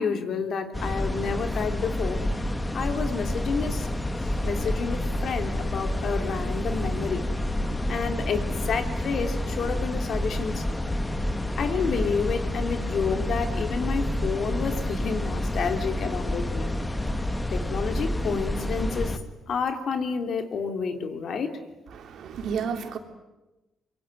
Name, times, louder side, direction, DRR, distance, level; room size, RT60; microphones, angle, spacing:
voice 1, 0.0-2.2 2.7-3.9 4.2-7.2 7.9-10.6 11.6-16.8 17.5-19.2 19.5-21.5, left 5 dB, 60° left, 6 dB, 3.2 m, -29 dB
sound 1, 0.7-19.2, left 1 dB, 15° left, 2.1 m, -29 dB
voice 2, 21.9-23.0, right 6 dB, 70° right, 5 dB, 3.5 m, -31 dB
25.5 x 23.5 x 9.6 m, 1.0 s
cardioid pair, 90°, 0 cm